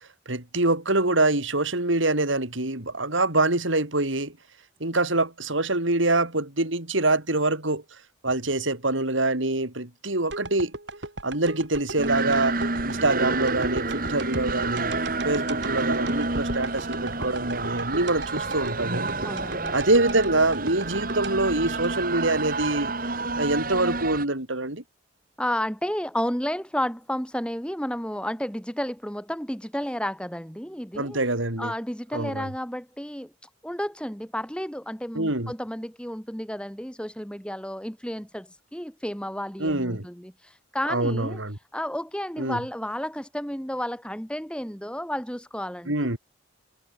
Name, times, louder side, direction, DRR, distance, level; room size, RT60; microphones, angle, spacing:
voice 1, 0.3-4.3 4.8-7.8 8.2-10.7 11.2-12.6 12.8-14.9 15.2-19.1 19.7-22.9 23.4-24.8 31.0-31.7 32.1-32.5 35.1-35.5 39.6-40.1 40.9-41.6 42.4-42.6 45.9-46.2, right 2 dB, 80° right, 4.3 m, -25 dB
sound 1, 10.3-22.5 22.9-23.0, right 2 dB, 65° right, 4.7 m, -37 dB
sound 2, 12.0-24.3, right 3 dB, 45° right, 2.5 m, -29 dB
voice 2, 19.2-19.7 25.4-31.2 31.6-33.3 33.6-41.4 41.7-46.2, equal, 5° left, 7.7 m, -32 dB
head